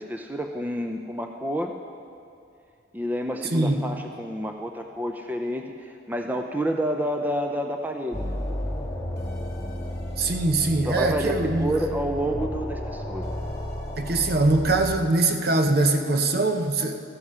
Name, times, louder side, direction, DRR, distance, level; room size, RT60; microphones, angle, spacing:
voice 1, 0.0-1.7 2.9-8.4 10.8-13.3, equal, 10° right, 4 dB, 0.5 m, -29 dB
voice 2, 3.5-3.8 10.2-11.7 14.0-17.0, right 2 dB, 55° right, 5 dB, 0.9 m, -22 dB
sound 1, 8.1-15.0, left 1 dB, 15° left, 1.8 m, -32 dB
13.5 x 9.8 x 5.6 m, 2.6 s
head